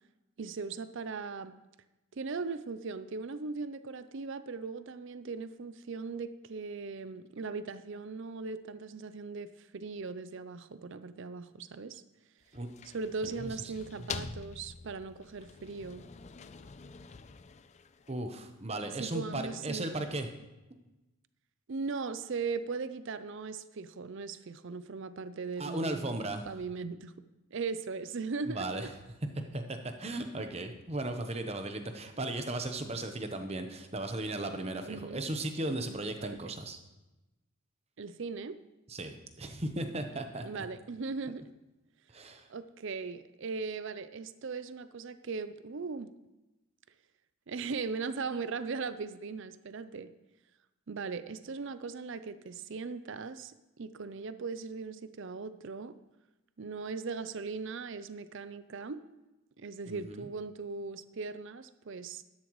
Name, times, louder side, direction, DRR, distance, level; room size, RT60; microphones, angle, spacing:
voice 1, 0.4-1.6 2.1-12.0 12.8-16.1 19.0-19.9 21.7-26.2 26.4-27.1 27.5-28.9 34.8-35.2 36.2-36.4 38.0-38.6 40.4-41.4 42.5-46.1 47.5-50.1 50.9-55.9 56.6-59.0 59.6-62.2, right 4 dB, 55° right, 13 dB, 0.5 m, -39 dB
sound 1, 12.4-18.4, left 6 dB, 30° left, 0.3 m, -46 dB
voice 2, 18.1-20.3 25.6-26.5 28.5-28.9 29.5-36.8 38.9-40.7 42.1-42.5 59.9-60.3, right 2 dB, 30° right, 6 dB, 0.9 m, -36 dB
12.0 x 11.0 x 3.1 m, 1.0 s
head